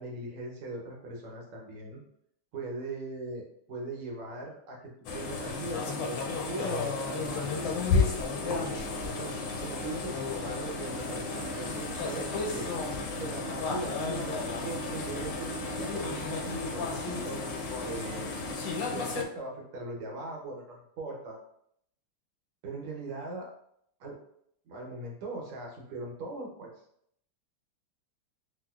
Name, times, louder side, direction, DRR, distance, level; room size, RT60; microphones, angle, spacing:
voice 1, 0.0-2.0 2.5-4.8 5.1-7.7 8.4-9.3 9.6-12.7 13.2-17.4 17.8-21.4 22.6-23.5 24.0-24.1 24.7-26.7, right 2 dB, 85° right, 0 dB, 1.7 m, -40 dB
sound 1, 5.1-19.2, left 4 dB, 75° left, 1.0 m, -33 dB
sound 2, 7.2-18.5, equal, 50° left, 0.5 m, -43 dB
4.5 x 2.1 x 2.3 m, 0.69 s
omnidirectional pair, 2.4 m